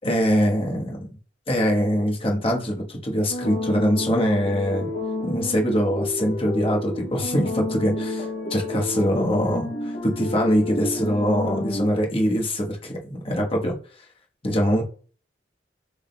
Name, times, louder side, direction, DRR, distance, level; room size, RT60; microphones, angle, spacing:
voice 1, 0.0-1.1 1.5-4.9 5.2-13.8 14.4-14.8, equal, 30° left, 1.2 m, -23 dB
sound 1, 3.3-11.9, left 2 dB, 55° left, 0.8 m, -30 dB
6.3 x 3.5 x 2.2 m
head